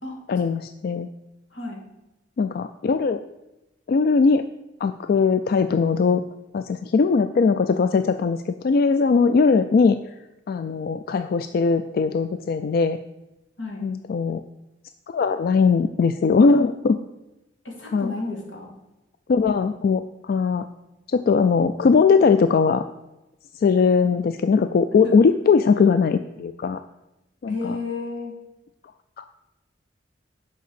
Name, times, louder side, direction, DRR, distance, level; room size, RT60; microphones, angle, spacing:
voice 1, 0.3-1.1 2.4-3.2 3.9-4.4 4.8-6.2 6.5-10.0 10.5-13.0 13.8-14.4 15.1-17.0 17.9-18.1 19.3-20.7 21.1-22.8 23.6-26.8 27.4-27.5 29.2-29.3, left 5 dB, 55° left, 10 dB, 0.3 m, -20 dB
voice 2, 17.6-18.8 25.0-25.2 27.5-28.4, left 3 dB, 85° left, 0 dB, 2.1 m, -32 dB
6.5 x 5.5 x 6.8 m, 0.98 s
head